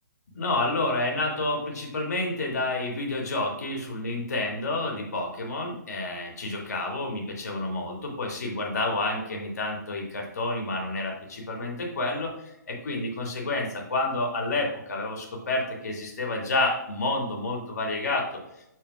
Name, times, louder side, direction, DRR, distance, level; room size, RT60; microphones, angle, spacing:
voice 1, 0.3-18.3, left 2 dB, 60° left, 0 dB, 2.2 m, -29 dB
12.5 x 4.4 x 2.4 m, 0.83 s
figure-of-eight pair, 130°, 10 cm